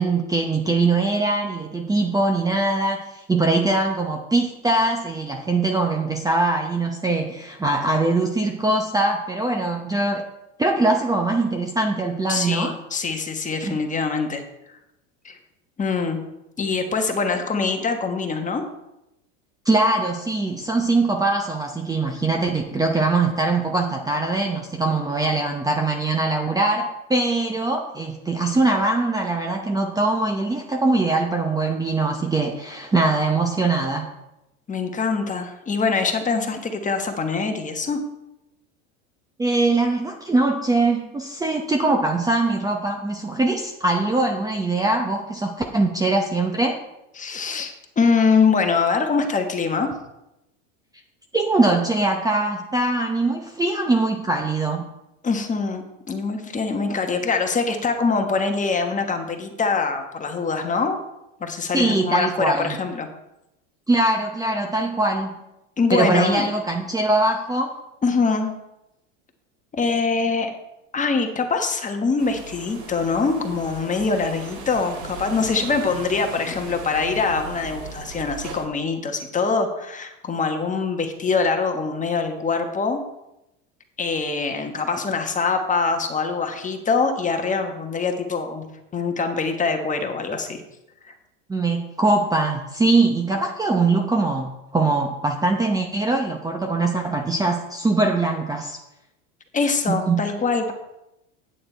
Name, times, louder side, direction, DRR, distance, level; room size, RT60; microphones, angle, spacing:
voice 1, 0.0-10.2 10.6-12.8 13.7-13.8 19.6-34.1 39.4-46.8 51.3-54.8 61.7-62.8 63.9-65.4 65.9-67.8 91.5-98.8 99.9-100.2, right 2 dB, 10° right, 2 dB, 0.7 m, -22 dB
voice 2, 12.3-14.4 15.2-15.4 15.8-16.2 16.6-18.6 34.7-38.0 47.2-49.9 55.2-61.0 61.4-63.1 65.8-66.4 68.0-68.5 69.7-70.5 70.9-83.0 84.0-88.7 88.9-90.6 91.0-91.1 99.5-100.7, left 4 dB, 20° left, 5 dB, 1.2 m, -23 dB
sound 1, 72.2-78.7, right 4 dB, 70° right, 2.7 m, -38 dB
8.8 x 7.8 x 4.4 m, 0.90 s
supercardioid pair, 115°, 38 cm